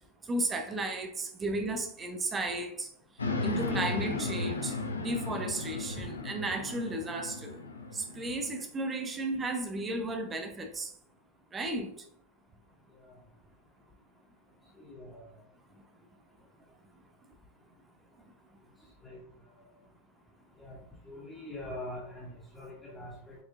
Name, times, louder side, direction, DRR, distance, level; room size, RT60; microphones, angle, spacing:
voice 1, 0.3-2.9 3.4-7.6 7.9-10.9 11.5-11.9, right 2 dB, 20° right, 4 dB, 1.0 m, -34 dB
sound 1, 3.2-8.6, left 3 dB, 75° left, 1.0 m, -35 dB
voice 2, 14.8-15.3 19.0-19.2 20.6-20.8 21.1-23.4, left 1 dB, 10° left, -9 dB, 2.3 m, -43 dB
8.5 x 4.9 x 2.5 m, 0.68 s
figure-of-eight pair, 90°, 0 cm